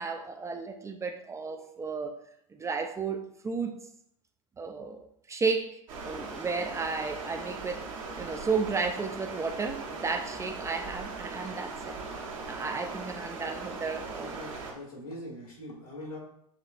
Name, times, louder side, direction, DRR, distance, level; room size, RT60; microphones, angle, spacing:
voice 1, 0.0-2.1 2.6-3.8 4.6-5.8 6.0-7.8 8.2-12.0 12.5-14.4, right 4 dB, 15° right, 0.4 m, -33 dB
Stream, 5.9-14.7, right 4 dB, 65° right, 1.2 m, -39 dB
voice 2, 14.1-16.2, left 1 dB, 85° left, 1.8 m, -42 dB
6.3 x 3.1 x 2.4 m
figure-of-eight pair, 80°, 18 cm